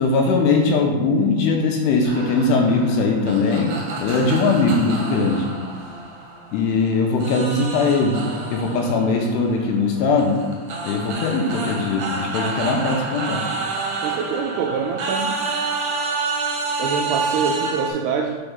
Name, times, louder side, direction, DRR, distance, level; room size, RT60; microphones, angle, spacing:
voice 1, 0.0-5.5 6.5-8.2 8.5-10.4 10.9-13.4, left 3 dB, 80° left, 2 dB, 2.7 m, -20 dB
sound 1, 2.0-6.8 7.2-17.9, right 3 dB, 65° right, 2.1 m, -29 dB
voice 2, 14.0-15.4 16.8-18.4, right 6 dB, 85° right, 2 dB, 2.3 m, -25 dB
6.2 x 4.5 x 5.3 m, 1.4 s
omnidirectional pair, 5.1 m